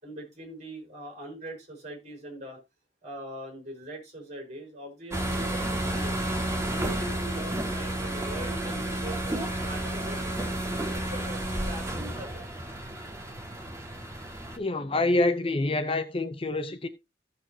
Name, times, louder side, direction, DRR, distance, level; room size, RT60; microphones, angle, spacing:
voice 1, 0.0-2.6 3.0-6.2 6.7-10.3 10.9-12.5, right 1 dB, 40° right, 4.7 m, -41 dB
sound 1, 5.1-14.6, right 1 dB, 15° right, 1.8 m, -31 dB
voice 2, 14.6-16.9, left 2 dB, 30° left, 0.7 m, -26 dB
15.5 x 6.7 x 2.8 m
head